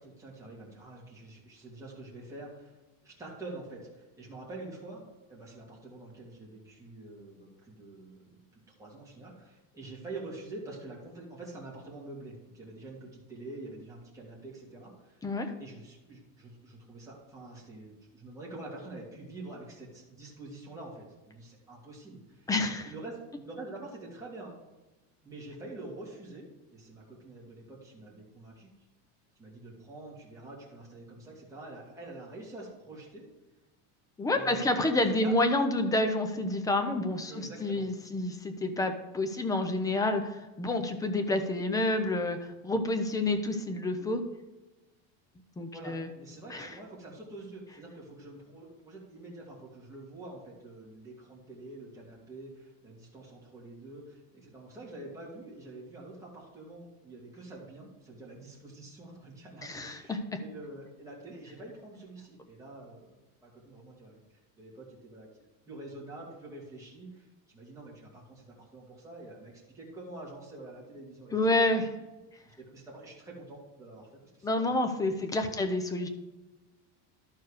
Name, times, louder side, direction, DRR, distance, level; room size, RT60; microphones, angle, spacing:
voice 1, 0.0-2.7 3.0-5.0 5.3-15.2 15.6-22.5 22.8-24.6 25.2-28.7 29.4-33.3 34.3-35.5 37.3-37.9 45.7-64.2 64.6-65.3 65.7-71.9 72.4-74.7 75.0-75.6, right 2 dB, 10° right, -5 dB, 2.4 m, -46 dB
voice 2, 22.5-22.9 34.2-44.2 45.6-46.1 46.5-46.7 59.6-60.2 71.3-71.9 74.4-76.1, left 2 dB, 10° left, 6 dB, 0.5 m, -29 dB
12.0 x 4.6 x 4.9 m, 1.1 s
cardioid pair, 160°, 40 cm